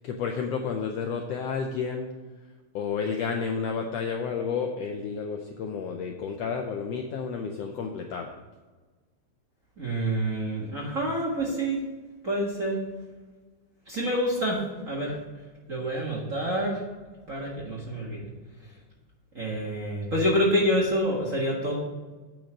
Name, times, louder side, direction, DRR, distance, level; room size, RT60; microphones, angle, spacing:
voice 1, 0.0-2.1 2.7-8.4, left 6 dB, 80° left, 3 dB, 1.5 m, -31 dB
voice 2, 9.8-11.8 12.2-12.8 13.9-15.2 15.7-16.8 17.3-18.3 19.3-21.8, equal, 35° right, -4 dB, 1.5 m, -27 dB
9.0 x 5.3 x 6.3 m, 1.3 s
omnidirectional pair, 3.6 m